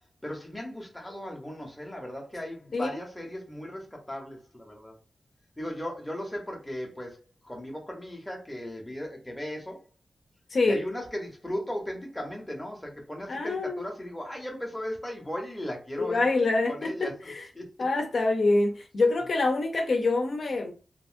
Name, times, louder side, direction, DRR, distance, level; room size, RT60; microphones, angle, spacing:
voice 1, 0.2-4.9 5.6-9.8 10.6-16.3 16.7-17.6, equal, 5° left, 0.7 m, -37 dB
voice 2, 10.5-10.8 13.3-13.9 16.0-17.5 17.8-20.7, left 3 dB, 55° left, 0.5 m, -26 dB
2.8 x 2.6 x 2.5 m
wide cardioid pair, 170°, 0 cm